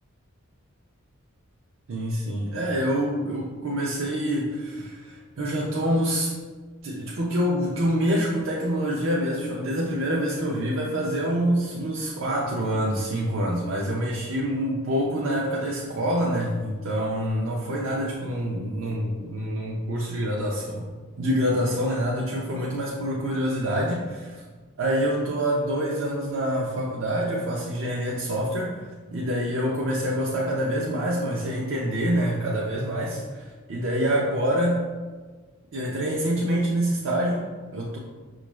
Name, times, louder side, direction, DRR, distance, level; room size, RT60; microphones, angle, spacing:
voice 1, 1.9-6.3 6.8-20.8 21.2-24.4 24.8-34.9 35.7-38.0, equal, 60° right, -3 dB, 0.5 m, -26 dB
5.9 x 2.4 x 3.1 m, 1.4 s
head